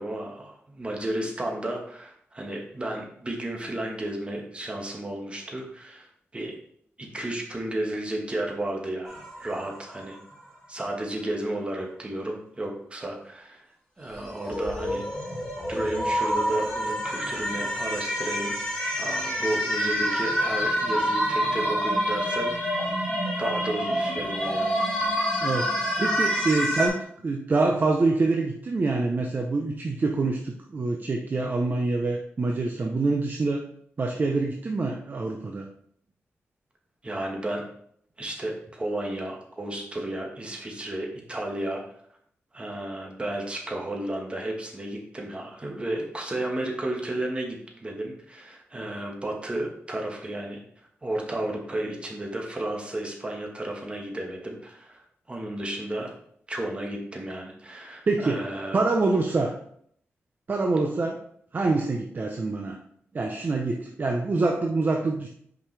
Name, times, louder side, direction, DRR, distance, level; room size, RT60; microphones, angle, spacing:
voice 1, 0.0-6.1 6.3-6.6 7.0-10.2 10.7-13.6 14.0-15.0 15.7-22.8 23.4-24.8 37.0-37.6 38.2-41.8 42.5-50.6 51.0-55.0 55.3-56.1 56.5-58.8, right 1 dB, 25° right, 1 dB, 1.4 m, -33 dB
sound 1, 9.1-10.1 14.1-26.9, equal, 15° left, 2.4 m, -27 dB
voice 2, 25.4-33.7 34.0-35.7 58.1-58.4 58.7-59.5 60.5-61.2 61.5-62.8 63.1-65.3, right 3 dB, 40° right, 2 dB, 0.6 m, -26 dB
5.9 x 5.0 x 3.3 m, 0.66 s
wide cardioid pair, 100°, 5 cm